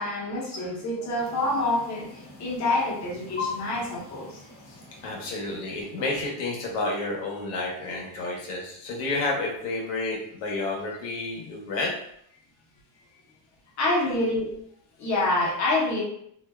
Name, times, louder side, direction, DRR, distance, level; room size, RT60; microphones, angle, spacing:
voice 1, 0.0-4.4 13.8-14.5 15.0-16.0, left 2 dB, 40° left, -3 dB, 0.9 m, -27 dB
sound 1, 1.2-6.3, left 5 dB, 25° left, 0.3 m, -41 dB
voice 2, 5.0-11.9, left 2 dB, 85° left, -1 dB, 0.9 m, -30 dB
2.5 x 2.1 x 2.3 m, 0.70 s
cardioid pair, 140°, 45 cm